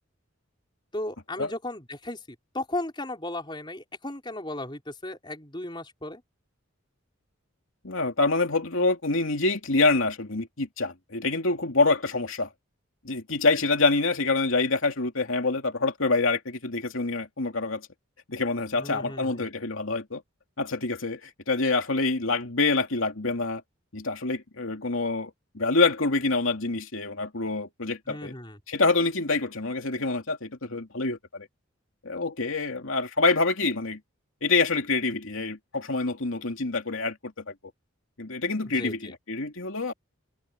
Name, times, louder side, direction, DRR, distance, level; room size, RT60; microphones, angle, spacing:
voice 1, 0.9-2.2 2.5-6.2 18.8-19.5 28.1-28.6 38.8-39.1, left 1 dB, 20° left, 4.8 m, -35 dB
voice 2, 7.8-12.5 13.0-17.9 18.3-20.2 20.6-23.6 23.9-28.3 28.7-31.5 32.0-34.0 34.4-37.5 38.2-39.9, left 3 dB, 75° left, 2.6 m, -26 dB
head